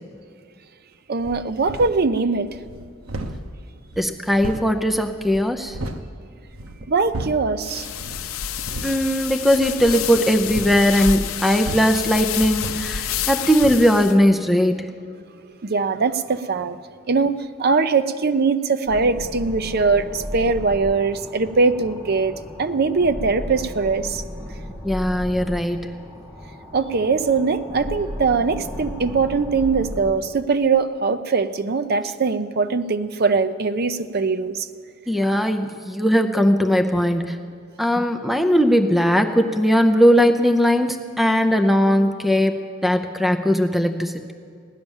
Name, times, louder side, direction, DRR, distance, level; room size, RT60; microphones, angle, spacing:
voice 1, 1.1-2.6 6.9-7.9 15.6-16.8 17.1-24.2 26.7-34.7, right 4 dB, 50° right, 11 dB, 0.6 m, -21 dB
sound 1, 1.2-2.1 2.5-6.1 6.5-7.6 8.0-8.3 8.6-9.0 9.9-13.3 13.6-13.9, right 1 dB, 90° right, 0.9 m, -35 dB
voice 2, 4.0-5.8 8.8-14.9 24.8-25.9 35.1-37.4 37.8-44.3, equal, ahead, 7 dB, 0.5 m, -19 dB
sound 2, 7.6-14.1, left 9 dB, 85° left, 0.6 m, -29 dB
sound 3, 18.9-30.1, equal, 25° right, 1.5 m, -35 dB
16.5 x 10.0 x 7.2 m, 2.3 s
head